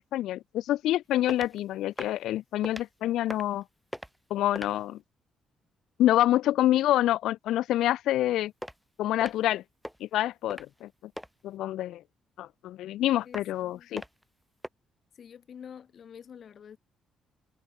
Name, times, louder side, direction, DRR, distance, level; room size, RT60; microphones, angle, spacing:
voice 1, 0.0-3.6 4.3-5.0 6.0-8.5 9.0-9.6 10.0-10.9 11.4-12.0 12.4-14.0, left 13 dB, 85° left, 1.0 m, -27 dB
sound 1, 1.3-1.6 1.9-2.2 2.6-2.9 3.2-3.6 3.9-4.2 4.5-4.8 8.6-8.8 9.2-9.5 9.8-10.0 10.5-10.8 11.2-11.3 13.3-13.6 14.0-14.2 14.6-14.7, equal, ahead, 2.0 m, -39 dB
voice 2, 13.2-13.9 15.2-16.8, left 8 dB, 55° left, 3.0 m, -47 dB
cardioid pair, 90°, 0 cm